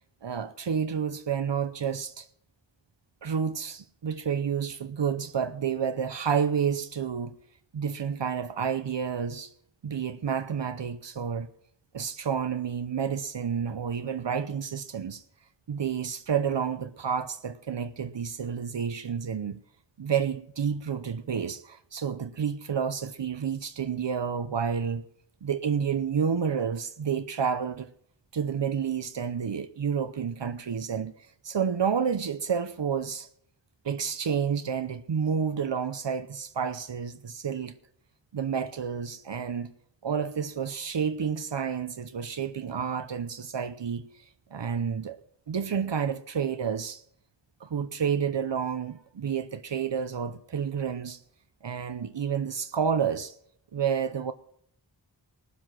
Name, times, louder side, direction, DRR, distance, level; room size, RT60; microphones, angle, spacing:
voice 1, 0.2-2.3 3.2-7.4 7.7-9.5 9.8-11.5 11.9-15.2 15.7-19.6 20.0-25.0 25.4-27.9 28.3-31.1 31.4-33.3 33.8-37.7 38.3-39.7 40.0-44.1 44.5-45.2 45.5-47.0 47.6-51.2 51.6-53.3 53.7-54.3, right 7 dB, 80° right, 0.8 m, -30 dB
18.5 x 7.6 x 6.2 m
wide cardioid pair, 55°, 43 cm